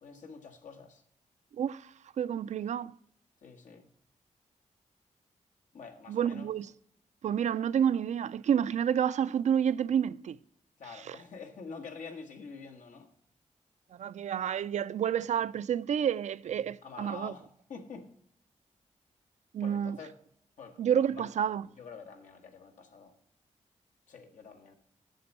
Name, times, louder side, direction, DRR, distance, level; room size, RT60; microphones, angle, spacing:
voice 1, 0.0-1.0 3.4-3.9 5.7-6.5 10.8-13.1 16.8-17.4 17.7-18.1 19.6-20.1 20.6-20.8 21.2-21.3 21.8-23.1 24.1-24.8, left 5 dB, 85° left, 1.4 m, -47 dB
voice 2, 1.6-1.9 2.2-2.9 6.1-6.7 7.2-10.4 11.0-11.2 14.0-17.3 19.5-20.0 20.8-21.7, right 8 dB, 70° right, 0.4 m, -29 dB
7.9 x 7.1 x 5.4 m
wide cardioid pair, 90°, 13 cm